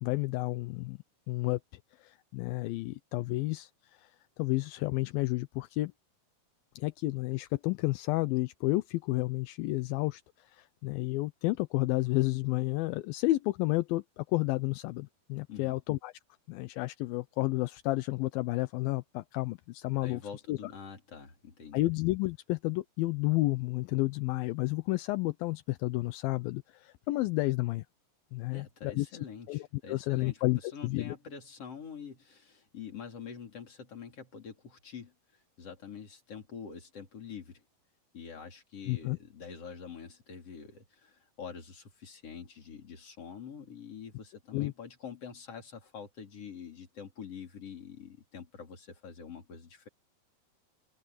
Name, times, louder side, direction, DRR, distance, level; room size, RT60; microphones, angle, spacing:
voice 1, 0.0-1.0 1.3-1.6 2.0-3.7 4.0-4.1 4.4-5.9 6.8-16.1 16.5-20.2 20.5-20.6 21.7-27.9 28.3-29.1 29.5-31.1 38.9-39.2 44.5-44.7, left 20 dB, 80° left, 2.2 m, -31 dB
voice 2, 20.0-21.8 28.5-35.1 35.6-37.6 38.1-49.9, left 6 dB, 35° left, 4.6 m, -46 dB
omnidirectional pair, 4.7 m